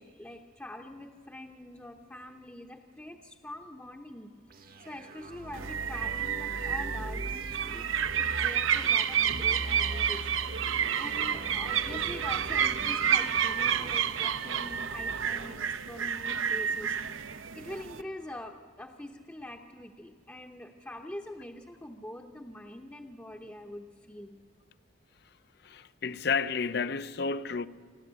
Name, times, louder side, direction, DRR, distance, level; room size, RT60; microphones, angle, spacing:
voice 1, 0.0-7.9 8.2-10.5 11.0-17.0 17.5-24.4, left 1 dB, 10° left, 0.8 m, -44 dB
sound 1, 4.5-15.5, right 1 dB, 45° right, 1.0 m, -42 dB
sound 2, 5.5-18.0, right 8 dB, 80° right, 0.8 m, -30 dB
voice 2, 25.6-27.7, left 5 dB, 50° left, 0.6 m, -31 dB
29.0 x 11.5 x 8.1 m
head